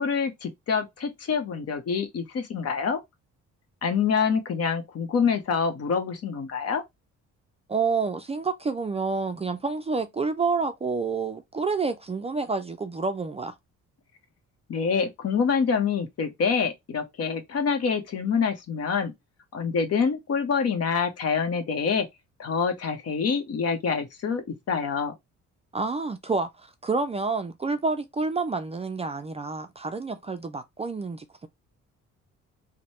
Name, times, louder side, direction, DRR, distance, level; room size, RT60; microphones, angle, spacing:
voice 1, 0.0-3.0 3.8-6.8 14.7-19.1 19.5-22.1 22.4-25.1, left 6 dB, 55° left, 0.9 m, -26 dB
voice 2, 7.7-13.6 25.7-31.5, right 4 dB, 20° right, 0.4 m, -28 dB
3.0 x 2.1 x 4.1 m
cardioid pair, 90°, 30 cm